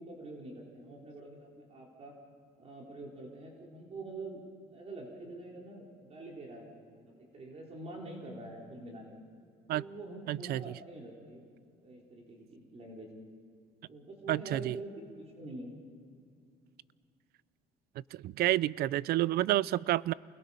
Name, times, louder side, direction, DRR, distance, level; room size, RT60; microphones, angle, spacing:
voice 1, 0.0-2.1 2.6-4.4 4.7-9.0 9.7-11.4 11.8-13.1 13.9-15.7, right 2 dB, 40° right, 3.9 m, -46 dB
voice 2, 10.3-10.6 14.3-14.8 18.1-20.1, right 15 dB, 65° right, 0.4 m, -29 dB
28.5 x 21.0 x 5.6 m
cardioid pair, 110°, 17 cm